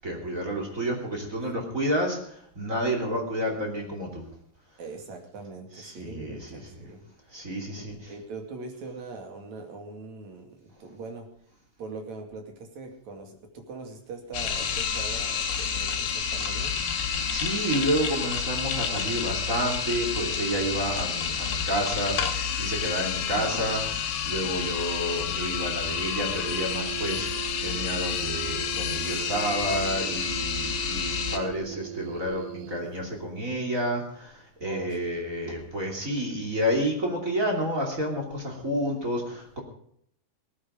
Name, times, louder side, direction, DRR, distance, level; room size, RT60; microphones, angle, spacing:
voice 1, 0.0-4.2 5.8-6.6 7.3-7.9 17.0-27.3 27.6-39.6, equal, 25° right, 0 dB, 2.5 m, -30 dB
voice 2, 4.8-7.1 7.7-11.3 11.8-16.7 34.6-35.1, right 3 dB, 50° right, 3 dB, 3.3 m, -41 dB
sound 1, 14.3-31.4, left 7 dB, 75° left, 3.3 m, -29 dB
sound 2, 26.6-33.1, right 16 dB, 85° right, 3.0 m, -40 dB
19.0 x 10.0 x 5.0 m, 0.69 s
omnidirectional pair, 4.9 m